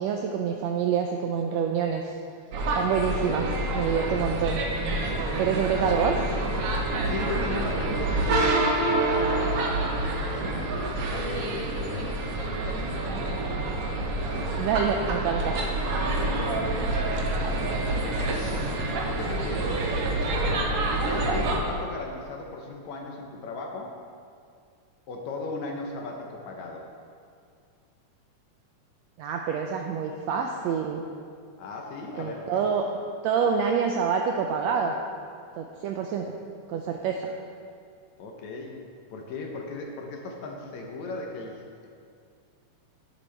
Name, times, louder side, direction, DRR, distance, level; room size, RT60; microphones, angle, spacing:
voice 1, 0.0-2.1 2.7-4.6 5.4-6.2 14.6-15.6 29.2-31.1 32.2-32.8 33.2-35.0 35.6-36.3 36.7-37.3, right 6 dB, 85° right, 2 dB, 1.5 m, -27 dB
sound 1, 2.5-21.6, right 2 dB, 65° right, 1.6 m, -27 dB
voice 2, 5.1-5.5 7.0-13.5 14.2-14.5 16.0-16.5 17.6-18.7 19.1-19.8 21.1-23.9 25.1-26.9 31.6-32.5 38.2-38.8 39.1-41.9, left 3 dB, 70° left, 1 dB, 2.1 m, -37 dB
10.5 x 10.0 x 3.4 m, 2.2 s
omnidirectional pair, 3.6 m